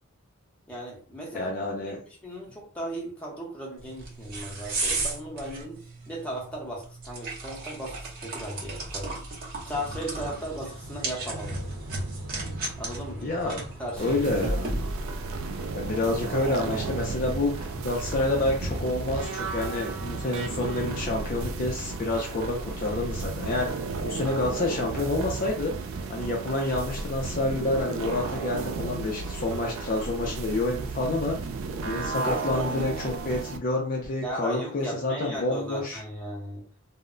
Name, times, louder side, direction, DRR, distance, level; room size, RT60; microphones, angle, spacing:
voice 1, 0.7-1.5 1.9-2.0 2.2-9.2 9.7-11.6 12.8-13.5 13.8-14.2 31.9-32.7 34.2-36.6, equal, 5° left, -3 dB, 0.7 m, -36 dB
voice 2, 1.3-2.0 13.2-13.6 14.0-14.7 15.7-23.7 24.0-25.7 26.1-31.4 31.8-36.0, left 2 dB, 40° left, 0 dB, 0.4 m, -28 dB
sound 1, 3.8-15.2, right 2 dB, 40° right, 0.8 m, -35 dB
sound 2, 9.7-26.3, right 1 dB, 80° right, 0.7 m, -40 dB
sound 3, 14.0-33.6, right 4 dB, 60° right, 0.3 m, -34 dB
2.1 x 2.0 x 3.6 m, 0.43 s
head